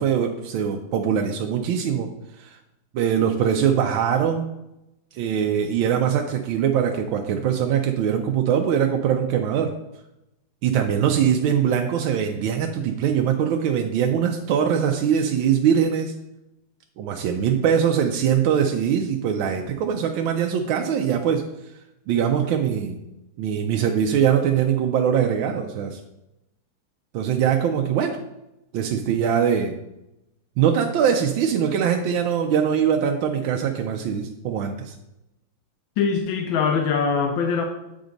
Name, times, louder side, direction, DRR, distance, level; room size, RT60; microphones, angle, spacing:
voice 1, 0.0-2.1 2.4-2.6 2.9-4.4 5.1-9.7 10.6-16.1 17.0-21.4 22.1-23.0 23.4-26.0 27.1-28.2 28.7-29.7 30.6-34.9, right 8 dB, 85° right, 3 dB, 1.4 m, -22 dB
voice 2, 36.0-37.6, left 5 dB, 85° left, 4 dB, 1.5 m, -22 dB
8.1 x 5.1 x 3.8 m, 0.89 s
omnidirectional pair, 2.1 m